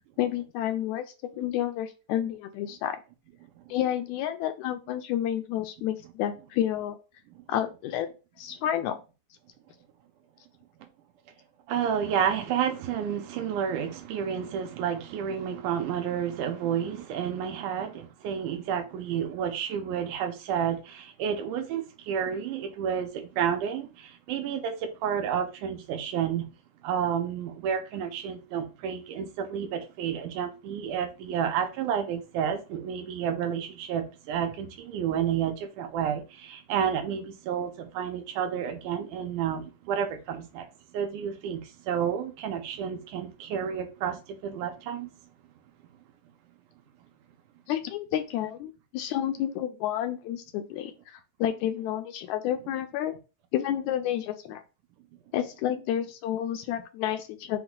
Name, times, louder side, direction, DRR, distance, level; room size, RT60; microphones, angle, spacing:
voice 1, 0.2-1.1 1.4-3.0 3.7-7.0 7.5-8.1 8.4-9.0 47.7-53.2 53.5-54.6 55.3-57.6, left 11 dB, 80° left, 1.8 m, -30 dB
voice 2, 11.7-26.5 26.8-40.7 40.9-45.1, right 8 dB, 85° right, 2.3 m, -30 dB
5.6 x 2.3 x 3.8 m
omnidirectional pair, 3.6 m